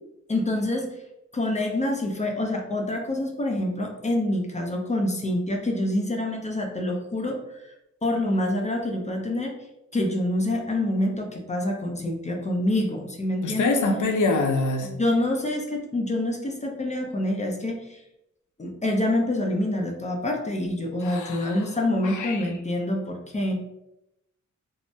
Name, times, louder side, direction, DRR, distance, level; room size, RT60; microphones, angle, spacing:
voice 1, 0.3-0.9 1.3-7.7 8.0-9.5 9.9-13.8 14.8-18.0 18.6-23.6, left 1 dB, 25° left, 1 dB, 0.5 m, -26 dB
voice 2, 13.4-14.9 21.0-21.7 22.0-22.5, left 3 dB, 70° left, 3 dB, 0.6 m, -25 dB
2.6 x 2.0 x 3.2 m, 0.85 s
cardioid pair, 75°, 31 cm